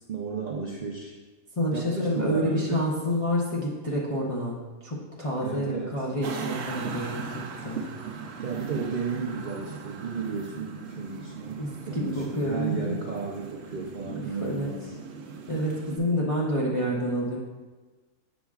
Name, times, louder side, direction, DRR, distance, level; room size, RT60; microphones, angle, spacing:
voice 1, 0.1-1.2 1.7-2.9 5.4-6.1 8.4-15.0, right 5 dB, 75° right, -2 dB, 0.4 m, -34 dB
voice 2, 1.6-4.6 4.8-7.3 7.6-7.9 11.6-12.9 14.1-14.7 15.5-17.4, equal, 35° left, -6 dB, 0.6 m, -28 dB
sound 1, 6.2-16.0, right 5 dB, 60° right, 0.8 m, -39 dB
7.3 x 6.1 x 2.4 m, 1.3 s
omnidirectional pair, 1.5 m